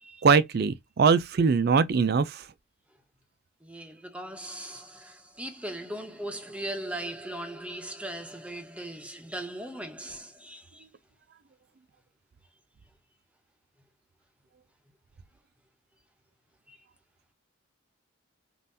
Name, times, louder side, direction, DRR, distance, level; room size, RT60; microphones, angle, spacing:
voice 1, 0.2-2.4, right 5 dB, 50° right, 0.4 m, -22 dB
voice 2, 3.6-10.9 16.7-16.8, right 1 dB, 5° right, 0.8 m, -39 dB
5.4 x 2.5 x 2.7 m
head